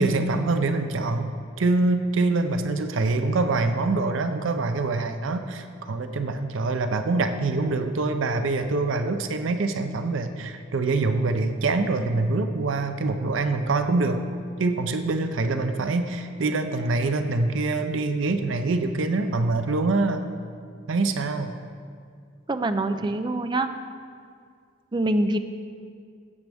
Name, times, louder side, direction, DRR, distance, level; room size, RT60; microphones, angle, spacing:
voice 1, 0.0-14.2 14.6-20.2 20.9-21.5, right 3 dB, 80° right, 8 dB, 0.6 m, -25 dB
voice 2, 22.5-23.7 24.9-25.4, right 1 dB, 25° right, 9 dB, 0.4 m, -24 dB
15.0 x 8.2 x 3.5 m, 2.2 s
head